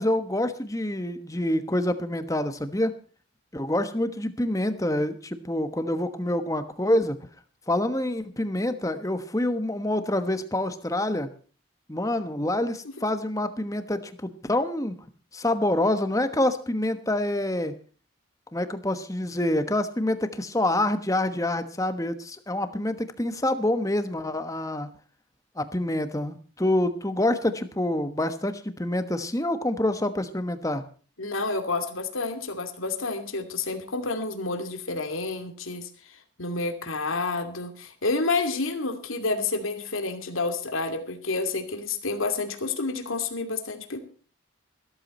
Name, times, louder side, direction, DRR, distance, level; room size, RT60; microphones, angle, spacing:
voice 1, 0.0-2.9 3.5-7.2 7.7-11.3 11.9-14.9 15.3-17.8 18.5-24.9 25.6-30.8, left 1 dB, 15° left, 10 dB, 1.2 m, -26 dB
voice 2, 31.2-44.0, left 3 dB, 80° left, 6 dB, 2.5 m, -29 dB
15.0 x 13.5 x 4.3 m, 0.40 s
head